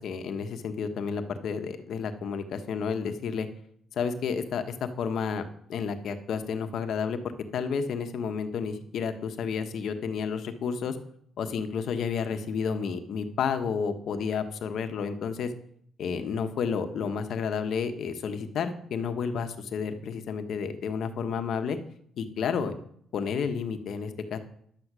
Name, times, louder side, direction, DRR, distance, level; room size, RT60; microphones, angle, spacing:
voice 1, 0.0-3.5 3.9-7.2 7.5-11.0 11.4-15.5 16.0-21.8 22.2-22.7 23.1-24.4, left 6 dB, 70° left, 8 dB, 1.3 m, -31 dB
11.0 x 8.3 x 6.2 m, 0.67 s
cardioid pair, 90°, 0 cm